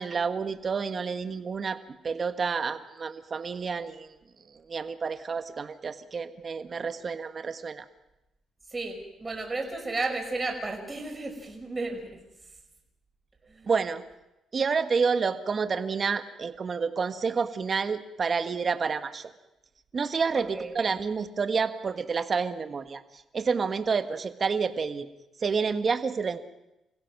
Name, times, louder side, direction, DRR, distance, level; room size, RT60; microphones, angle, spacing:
voice 1, 0.0-4.1 4.5-7.8 13.7-14.0 14.5-19.3 19.9-23.0 23.3-25.1 25.4-26.4, right 5 dB, 40° right, 10 dB, 1.5 m, -29 dB
voice 2, 8.7-12.2 13.5-13.7 20.3-20.8, right 3 dB, 25° right, 2 dB, 5.6 m, -33 dB
28.0 x 16.0 x 6.1 m, 0.92 s
cardioid pair, 90°, 0 cm